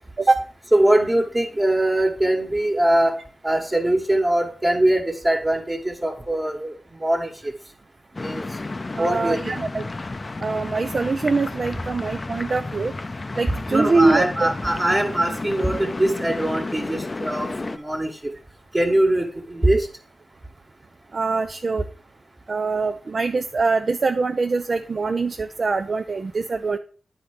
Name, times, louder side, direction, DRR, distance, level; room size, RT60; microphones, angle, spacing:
voice 1, 0.7-7.5 8.2-8.4 9.0-9.4 13.7-18.3 18.7-19.9, right 1 dB, 25° right, -2 dB, 1.4 m, -22 dB
sound 1, 8.1-17.8, left 2 dB, 40° left, 0.5 m, -32 dB
voice 2, 9.0-9.8 10.4-12.9 13.3-14.5 21.1-21.9 22.5-26.8, right 3 dB, 55° right, 7 dB, 0.5 m, -23 dB
10.0 x 4.5 x 5.0 m, 0.40 s
cardioid pair, 60°, 0 cm